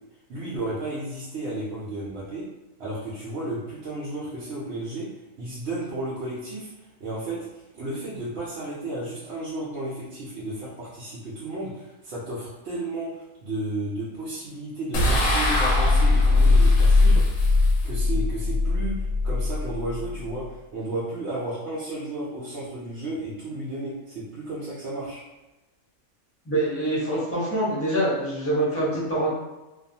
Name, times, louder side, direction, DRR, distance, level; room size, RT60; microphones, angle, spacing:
voice 1, 0.3-2.4 2.8-5.1 5.4-25.2, right 1 dB, 65° right, -7 dB, 0.8 m, -33 dB
sound 1, 14.9-20.3, left 2 dB, 80° left, 1.0 m, -20 dB
voice 2, 26.4-29.3, right 1 dB, 10° left, -10 dB, 0.9 m, -25 dB
2.5 x 2.3 x 2.6 m, 1.1 s
omnidirectional pair, 1.3 m